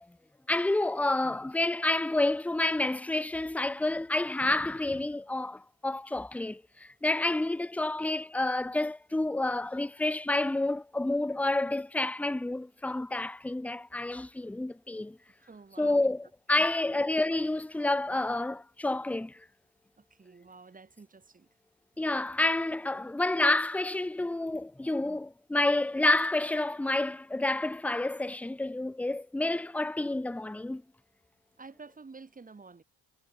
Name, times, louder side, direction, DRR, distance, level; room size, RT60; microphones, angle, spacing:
voice 1, 0.5-15.2 15.8-19.4 22.0-30.8, left 2 dB, 5° left, 0.7 m, -29 dB
voice 2, 15.4-16.1 16.5-17.0 20.0-21.5 31.6-32.8, right 4 dB, 25° right, 6.9 m, -50 dB
cardioid pair, 130°, 34 cm